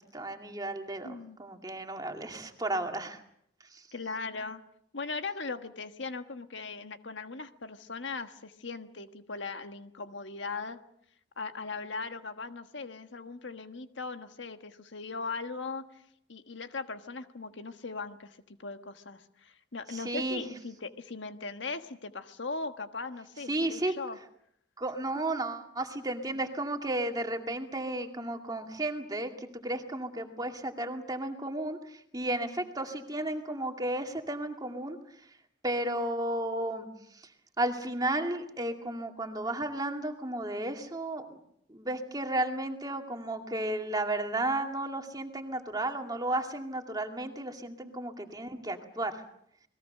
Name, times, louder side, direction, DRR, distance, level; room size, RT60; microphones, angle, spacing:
voice 1, 0.1-1.1 1.4-3.2 20.0-20.4 23.5-23.9 24.8-29.3 29.6-31.8 32.1-35.0 35.6-36.9 37.6-41.4 41.7-49.1, right 1 dB, 20° right, 4 dB, 2.2 m, -33 dB
voice 2, 1.0-1.4 3.9-4.6 4.9-10.8 11.4-16.0 16.3-24.2 47.9-48.0, left 4 dB, 75° left, 8 dB, 1.5 m, -39 dB
29.0 x 20.5 x 6.6 m, 0.71 s
head